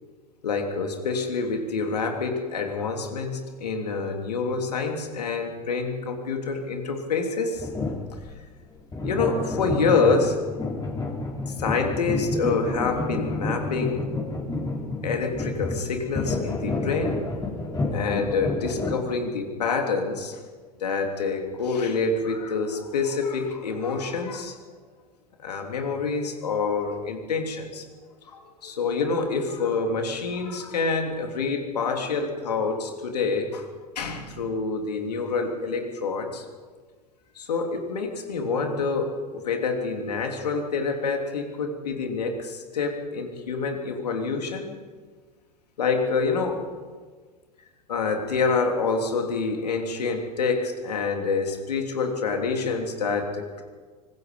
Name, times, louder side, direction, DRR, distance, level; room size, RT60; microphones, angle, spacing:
voice 1, 0.4-7.7 9.0-10.4 11.5-14.0 15.0-17.2 17.9-20.4 20.8-24.5 25.4-27.8 28.2-33.7 33.9-36.4 37.3-44.7 45.8-46.6 47.9-53.6, left 4 dB, 75° left, 3 dB, 3.4 m, -27 dB
sound 1, 7.6-8.3 8.9-19.0, left 2 dB, 20° left, 4.2 m, -29 dB
25.0 x 20.0 x 5.4 m, 1.5 s
figure-of-eight pair, 80°, 21 cm